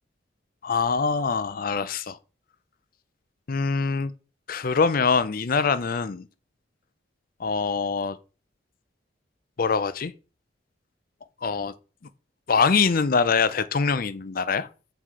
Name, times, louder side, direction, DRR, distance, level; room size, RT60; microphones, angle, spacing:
voice 1, 0.6-2.2 3.5-4.1 4.5-6.3 7.4-8.2 9.6-10.1 11.4-11.7 12.5-14.7, left 5 dB, 50° left, 0.5 m, -24 dB
5.7 x 4.9 x 6.1 m
head